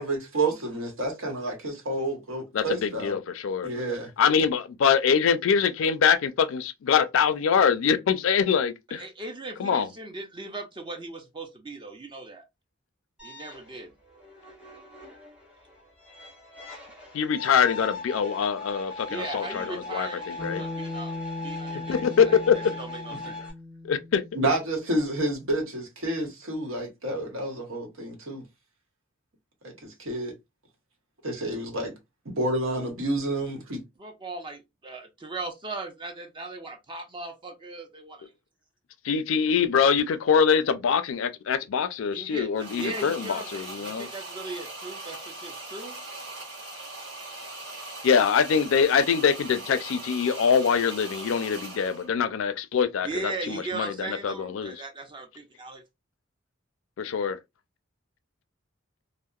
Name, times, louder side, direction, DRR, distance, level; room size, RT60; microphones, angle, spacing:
voice 1, 0.0-3.2 3.6-4.1 24.3-28.4 29.6-30.3 31.2-31.9 32.2-33.8, right 1 dB, 90° right, 1.0 m, -29 dB
voice 2, 2.5-3.7 4.2-9.0 9.6-9.9 17.1-20.6 21.9-22.6 23.8-24.2 39.0-44.1 48.0-54.7 57.0-57.4, left 6 dB, 75° left, 0.4 m, -24 dB
voice 3, 8.9-12.4 13.2-13.9 19.1-23.4 34.0-38.3 42.1-45.9 53.0-55.8, right 2 dB, 25° right, 0.4 m, -38 dB
sound 1, 13.2-23.5, left 3 dB, 5° right, 0.8 m, -40 dB
Bass guitar, 20.4-24.8, left 2 dB, 45° right, 1.1 m, -38 dB
sound 2, 42.6-52.1, right 2 dB, 65° right, 1.7 m, -40 dB
2.7 x 2.0 x 2.3 m
head